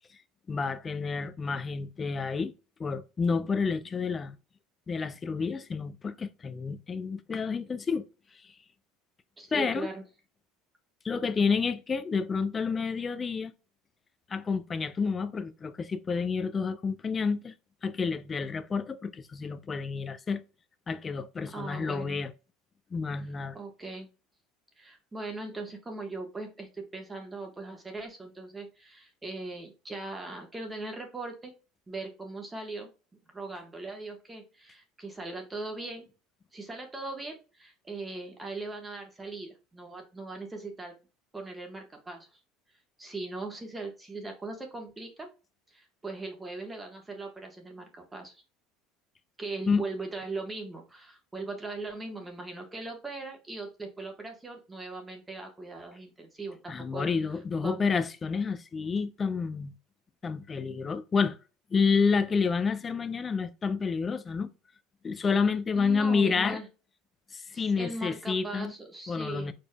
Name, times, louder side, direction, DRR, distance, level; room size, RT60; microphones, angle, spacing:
voice 1, 0.5-2.5 2.8-4.4 4.9-8.1 8.4-8.5 9.5-9.9 11.0-13.5 14.3-17.5 17.8-20.4 20.9-22.3 22.9-23.6 49.7-49.8 56.7-59.7 60.2-61.4 61.7-64.5 65.0-66.6 67.3-68.7 69.1-69.5, left 5 dB, 25° left, 0.5 m, -29 dB
voice 2, 9.4-10.0 21.5-22.2 23.5-24.1 24.8-31.5 31.9-32.9 33.3-36.1 36.5-40.9 41.3-42.4 43.0-45.3 45.7-48.4 49.4-57.1 57.6-57.9 65.7-66.7 67.5-69.5, right 2 dB, 15° right, 1.3 m, -39 dB
4.8 x 4.4 x 2.3 m
supercardioid pair, 115°, 0 cm